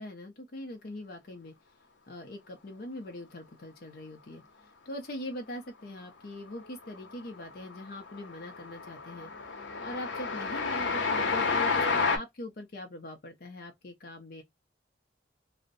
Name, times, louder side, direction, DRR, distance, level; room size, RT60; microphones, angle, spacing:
voice 1, 0.0-1.5 2.1-4.4 4.9-9.3 9.8-14.4, left 1 dB, 55° left, 0.5 m, -42 dB
Train, 6.5-7.0 7.3-12.2, left 4 dB, 85° left, 0.8 m, -30 dB
2.6 x 2.1 x 3.9 m
head